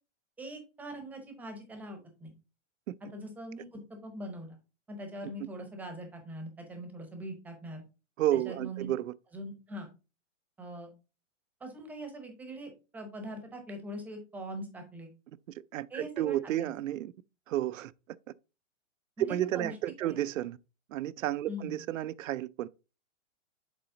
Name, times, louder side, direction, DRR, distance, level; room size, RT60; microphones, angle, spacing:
voice 1, 0.4-2.3 3.1-4.6 4.9-7.8 8.3-8.9 9.3-9.9 10.6-10.9 11.6-15.1 15.9-16.7 19.2-19.7 20.0-20.2 21.5-21.8, right 1 dB, 5° right, 0.7 m, -42 dB
voice 2, 8.2-9.1 15.7-17.1 17.5-17.9 19.3-20.6 20.9-22.7, right 13 dB, 80° right, 0.5 m, -32 dB
7.1 x 4.1 x 3.8 m
hypercardioid pair, 160°, 38 cm